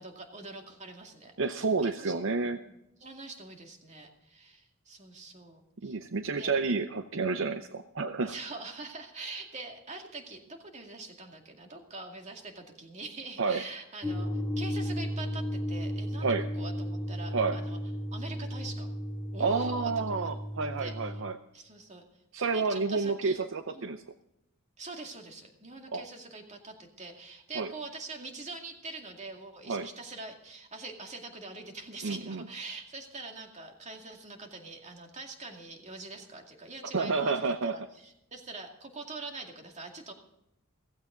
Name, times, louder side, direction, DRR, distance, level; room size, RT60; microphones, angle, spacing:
voice 1, 0.0-1.3 1.8-2.1 2.6-2.7 3.0-6.0 6.4-6.5 8.2-17.8 18.1-18.9 19.3-20.3 20.8-21.1 21.5-22.0 22.5-23.4 23.7-23.9 24.8-37.4 37.6-40.1, right 3 dB, 35° right, 3 dB, 2.3 m, -44 dB
voice 2, 1.4-2.6 5.8-8.3 13.4-13.6 16.2-16.5 17.3-17.6 19.4-21.4 22.3-24.0 25.9-26.1 27.5-27.7 29.7-29.9 32.0-32.5 36.9-37.8, right 4 dB, 65° right, 9 dB, 0.7 m, -30 dB
sound 1, 14.0-21.2, equal, 10° right, 1.9 m, -34 dB
16.0 x 15.5 x 3.9 m, 0.85 s
head